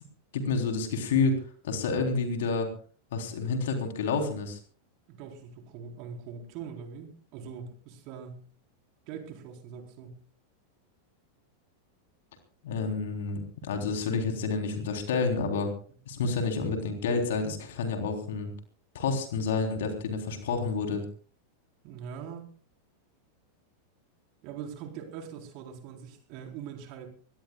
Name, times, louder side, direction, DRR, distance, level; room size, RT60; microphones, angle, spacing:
voice 1, 0.3-2.7 3.1-4.6 12.6-15.7 16.1-18.5 18.9-21.0, left 4 dB, 55° left, 4 dB, 3.7 m, -29 dB
voice 2, 5.1-8.5 9.1-10.2 21.8-22.5 24.4-27.1, right 7 dB, 45° right, 3 dB, 4.1 m, -42 dB
24.5 x 18.5 x 2.4 m, 0.41 s
figure-of-eight pair, 90°, 0 cm